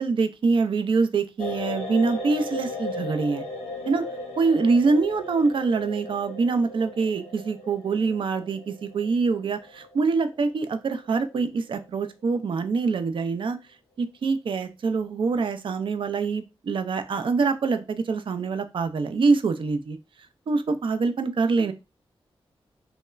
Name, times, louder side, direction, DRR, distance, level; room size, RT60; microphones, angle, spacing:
voice 1, 0.0-3.4 3.9-4.0 4.4-13.6 14.0-20.0 20.5-21.7, right 4 dB, 60° right, 10 dB, 0.4 m, -25 dB
sound 1, 1.4-11.3 11.6-11.8, left 2 dB, 85° left, 0.5 m, -36 dB
2.9 x 2.1 x 2.3 m, 0.27 s
cardioid pair, 55°, 10 cm